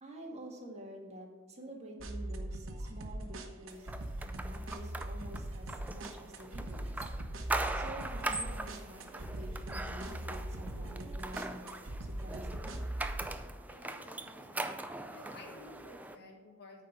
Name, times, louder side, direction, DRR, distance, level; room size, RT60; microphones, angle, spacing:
voice 1, 0.0-3.9 4.2-7.1 7.7-11.7 12.0-12.8, right 1 dB, 35° right, 0 dB, 1.6 m, -48 dB
sound 1, 2.0-13.3, right 1 dB, 90° right, 1.0 m, -41 dB
sound 2, 3.9-16.1, right 2 dB, 10° right, 0.4 m, -41 dB
voice 2, 13.7-14.7 15.1-16.8, left 2 dB, 55° left, 1 dB, 1.7 m, -53 dB
8.9 x 4.4 x 6.8 m, 1.3 s
head